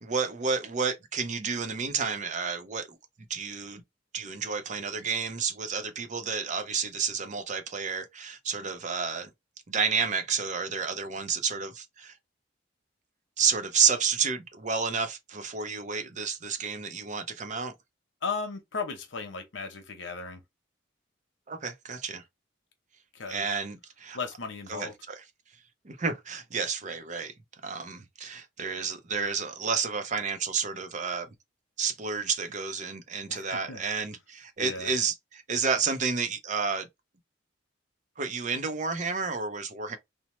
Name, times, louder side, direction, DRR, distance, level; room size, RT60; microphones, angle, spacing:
voice 1, 0.0-3.0 3.3-3.8 4.1-9.3 9.7-12.2 13.4-17.7 21.5-22.2 23.3-24.2 24.7-25.2 25.8-27.3 27.6-31.3 31.8-36.9 38.2-40.0, right 5 dB, 40° right, 0.5 m, -30 dB
voice 2, 18.2-20.4 23.1-23.5 24.1-24.9 33.3-33.8 34.6-34.9, left 4 dB, 75° left, 0.8 m, -36 dB
2.9 x 2.0 x 3.0 m
head